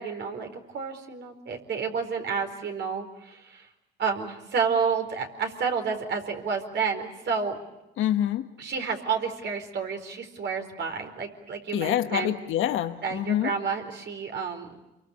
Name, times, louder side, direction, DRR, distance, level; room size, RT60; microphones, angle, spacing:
voice 1, 0.0-3.7 4.0-7.6 8.6-12.3 13.0-14.7, right 5 dB, 60° right, 4 dB, 4.4 m, -30 dB
voice 2, 8.0-8.5 11.7-13.5, left 11 dB, 85° left, 9 dB, 1.1 m, -26 dB
27.5 x 23.5 x 8.4 m, 0.95 s
cardioid pair, 90°, 20 cm